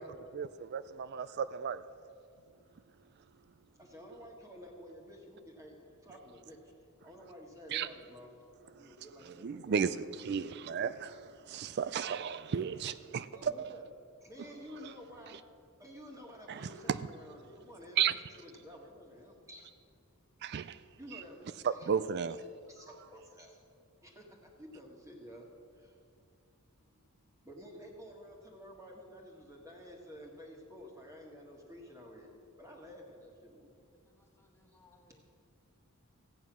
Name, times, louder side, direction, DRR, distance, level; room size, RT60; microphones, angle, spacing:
voice 1, 0.3-1.8 7.7-7.9 9.4-13.7 16.5-17.0 18.0-18.1 20.4-20.8 21.9-22.4, right 7 dB, 50° right, 14 dB, 0.3 m, -34 dB
voice 2, 3.8-6.7 7.0-8.3 8.6-10.1 13.3-13.9 14.2-15.4 15.8-19.7 21.0-21.9 22.3-23.6 24.0-25.5 25.7-26.0 27.4-32.3 32.6-33.8 34.7-34.8 35.1-35.2, equal, 15° right, 0 dB, 1.7 m, -51 dB
voice 3, 33.9-35.2, left 2 dB, 10° left, 2 dB, 1.3 m, -66 dB
14.5 x 9.3 x 6.1 m, 2.4 s
head